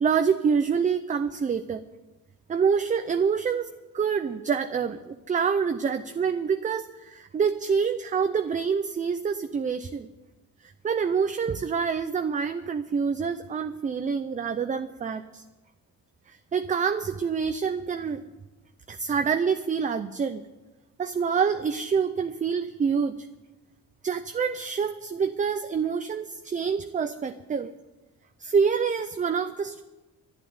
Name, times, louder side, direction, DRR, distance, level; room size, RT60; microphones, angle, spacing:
voice 1, 0.0-1.8 2.5-3.7 3.9-10.1 10.6-15.4 16.3-18.2 18.9-20.4 21.0-23.3 24.0-27.7 28.4-29.8, right 6 dB, 20° right, 9 dB, 0.5 m, -26 dB
11.5 x 11.0 x 9.5 m, 1.1 s
cardioid pair, 155°, 35 cm